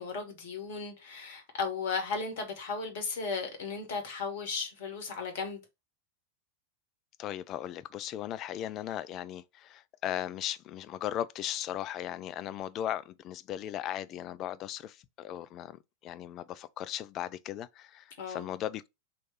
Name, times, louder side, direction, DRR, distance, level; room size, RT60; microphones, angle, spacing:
voice 1, 0.0-5.6 18.2-18.4, left 4 dB, 55° left, 1.3 m, -35 dB
voice 2, 7.2-18.9, left 11 dB, 35° left, 0.3 m, -37 dB
3.1 x 2.8 x 4.5 m
figure-of-eight pair, 90°, 0 cm